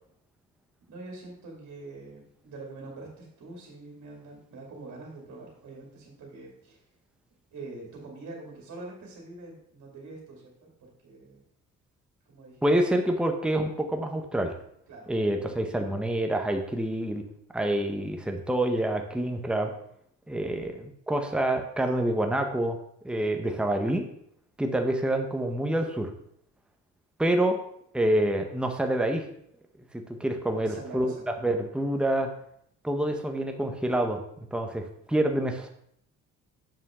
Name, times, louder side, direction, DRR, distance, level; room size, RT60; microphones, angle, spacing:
voice 1, 0.9-6.8 7.5-11.4 12.3-12.6 14.9-15.9 30.5-31.3, right 3 dB, 65° right, -1 dB, 2.3 m, -45 dB
voice 2, 12.6-14.5 15.1-17.2 17.5-19.7 20.3-22.8 23.0-24.0 24.6-26.1 27.2-27.6 27.9-29.3 29.9-32.3 32.8-35.7, right 1 dB, 5° right, 4 dB, 0.9 m, -27 dB
7.2 x 5.7 x 3.6 m, 0.71 s
cardioid pair, 90°, 30 cm